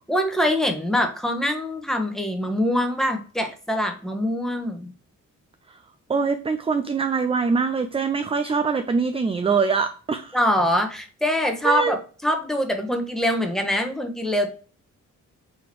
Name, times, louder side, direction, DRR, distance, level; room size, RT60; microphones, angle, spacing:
voice 1, 0.1-4.9 10.3-14.5, left 1 dB, ahead, 4 dB, 1.1 m, -24 dB
voice 2, 6.1-10.4 11.6-12.0, right 5 dB, 20° right, 9 dB, 0.3 m, -23 dB
4.2 x 2.9 x 4.4 m, 0.38 s
cardioid pair, 80°, 31 cm